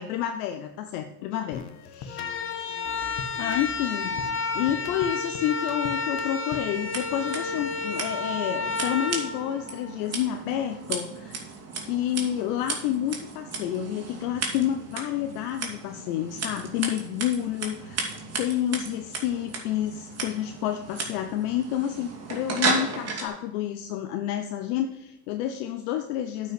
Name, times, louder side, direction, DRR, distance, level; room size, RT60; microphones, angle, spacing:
voice 1, 0.0-2.3 3.4-4.2 4.5-11.4 11.8-26.5, left 11 dB, 65° left, 7 dB, 0.9 m, -29 dB
sound 1, 1.5-6.9, left 5 dB, 50° left, 1.3 m, -42 dB
sound 2, 2.1-10.2, left 4 dB, 25° left, 1.6 m, -31 dB
Scissors, 6.7-23.3, right 3 dB, 30° right, 2.9 m, -34 dB
8.9 x 5.5 x 7.7 m, 0.94 s
hypercardioid pair, 80°, 50 cm